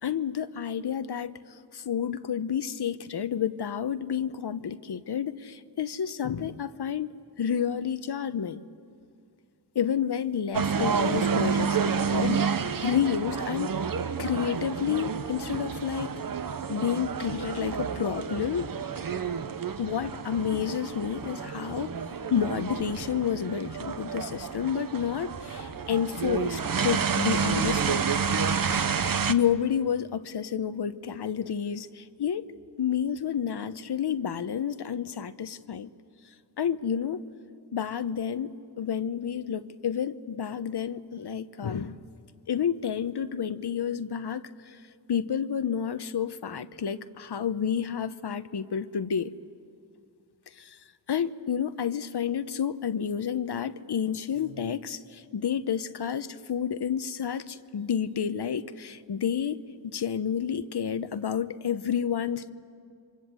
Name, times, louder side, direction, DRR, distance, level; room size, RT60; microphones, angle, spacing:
voice 1, 0.0-7.1 7.4-8.6 9.7-13.7 14.2-16.1 16.7-18.7 19.8-21.9 22.3-28.1 29.3-32.5 32.8-35.9 36.6-37.3 37.7-38.5 38.8-42.0 42.5-44.8 45.1-49.3 50.5-50.8 51.1-62.5, left 8 dB, 65° left, 0.9 m, -30 dB
sound 1, 10.5-29.3, right 6 dB, 50° right, 0.9 m, -29 dB
28.0 x 24.5 x 7.6 m
wide cardioid pair, 75°, 44 cm